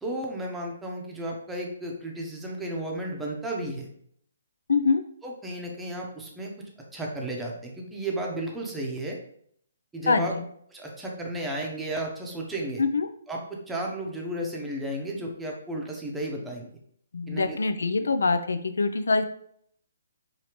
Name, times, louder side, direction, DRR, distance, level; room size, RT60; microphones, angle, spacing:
voice 1, 0.0-3.9 5.2-6.5 6.9-9.2 9.9-10.3 10.7-12.8 13.3-16.7 17.3-17.6, right 1 dB, 5° right, -1 dB, 0.8 m, -33 dB
voice 2, 4.7-5.0 10.1-10.5 12.8-13.1 17.1-19.3, left 4 dB, 80° left, 10 dB, 0.4 m, -24 dB
4.9 x 2.7 x 3.0 m, 0.66 s
hypercardioid pair, 150°, 0 cm